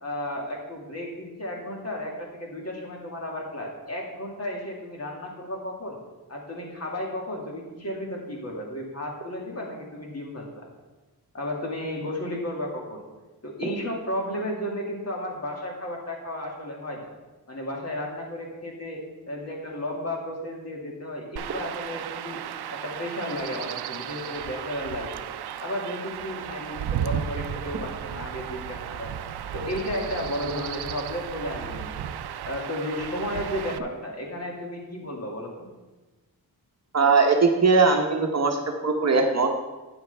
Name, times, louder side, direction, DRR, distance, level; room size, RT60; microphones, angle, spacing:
voice 1, 0.0-6.0 6.3-10.7 11.3-13.0 13.4-17.1 17.5-22.4 22.7-25.3 25.6-29.1 29.5-32.0 32.4-35.7, left 1 dB, 40° left, -1 dB, 2.2 m, -33 dB
Chirp tweet / Wind / Stream, 21.4-33.8, right 9 dB, 90° right, 0.5 m, -34 dB
voice 2, 36.9-39.6, right 4 dB, 45° right, 3 dB, 0.9 m, -20 dB
12.0 x 8.8 x 3.4 m, 1.2 s
wide cardioid pair, 125°, 38 cm